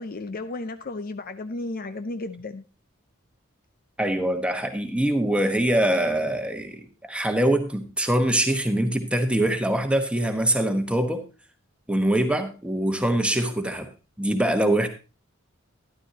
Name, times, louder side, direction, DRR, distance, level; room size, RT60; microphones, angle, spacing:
voice 1, 0.0-2.6, left 2 dB, 45° left, 0.6 m, -33 dB
voice 2, 4.0-11.2 11.9-13.9 14.2-14.9, right 1 dB, 5° right, 1.2 m, -23 dB
12.5 x 11.5 x 2.8 m
head